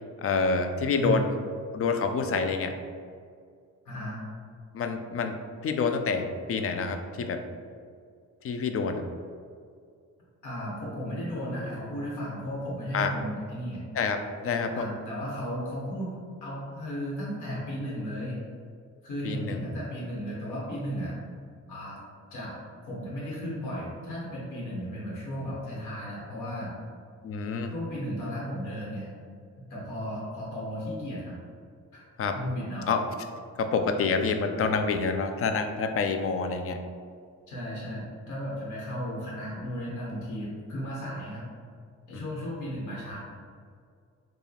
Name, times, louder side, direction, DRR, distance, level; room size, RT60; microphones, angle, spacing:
voice 1, 0.2-1.3 1.7-2.7 4.7-5.3 5.6-7.4 8.4-9.0 12.9-13.1 14.0-14.2 14.4-14.8 19.2-19.7 27.2-27.7 32.2-32.4 32.9-33.0 33.6-36.8 42.1-42.2, left 4 dB, 50° left, 6 dB, 0.5 m, -27 dB
voice 2, 3.8-4.2 10.4-13.8 14.7-18.4 19.0-21.1 21.7-22.0 22.3-22.5 22.8-26.7 27.7-29.1 29.6-31.4 31.9-32.0 32.3-32.9 37.5-41.5 42.1-43.2, equal, 75° left, -6 dB, 1.3 m, -35 dB
4.7 x 2.4 x 3.3 m, 2.1 s
cardioid pair, 90°, 30 cm